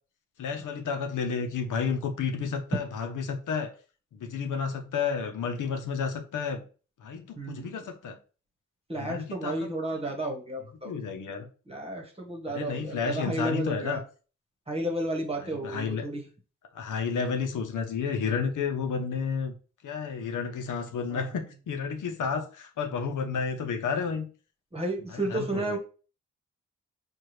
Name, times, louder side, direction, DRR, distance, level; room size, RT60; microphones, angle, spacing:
voice 1, 0.4-3.7 4.1-6.6 7.0-8.2 8.9-10.0 10.8-11.5 12.5-14.0 15.4-16.1 16.7-19.5 19.8-24.3 25.1-25.8, left 6 dB, 80° left, 0.7 m, -31 dB
voice 2, 7.4-7.7 8.9-10.9 11.7-14.0 14.7-16.2 21.1-21.2 24.7-25.8, right 1 dB, 20° right, 1.2 m, -32 dB
4.6 x 2.4 x 3.1 m
cardioid pair, 85°, 30 cm